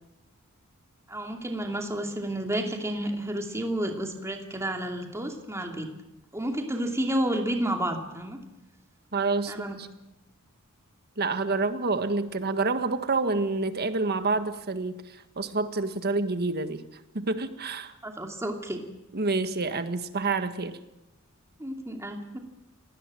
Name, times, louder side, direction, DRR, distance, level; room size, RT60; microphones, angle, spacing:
voice 1, 1.1-5.9 6.3-8.4 9.5-9.8 18.0-18.8 21.6-22.4, right 1 dB, 15° right, 3 dB, 2.6 m, -31 dB
voice 2, 9.1-9.9 11.2-16.8 17.1-17.9 19.1-20.8, right 3 dB, 45° right, 10 dB, 1.6 m, -28 dB
28.0 x 19.0 x 7.6 m, 0.93 s
head